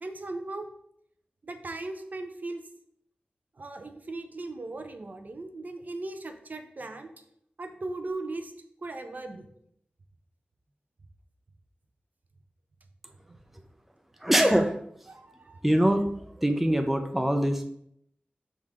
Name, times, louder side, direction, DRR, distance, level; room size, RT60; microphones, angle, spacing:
voice 1, 0.0-0.7 1.4-2.6 3.6-7.1 7.6-8.5 8.8-9.5 13.2-13.4 15.1-15.9, right 2 dB, 50° right, 7 dB, 0.6 m, -38 dB
voice 2, 14.2-14.7 15.6-16.0 16.4-17.7, equal, 5° right, 6 dB, 0.5 m, -23 dB
5.4 x 3.7 x 4.8 m, 0.72 s
wide cardioid pair, 95°, 4 cm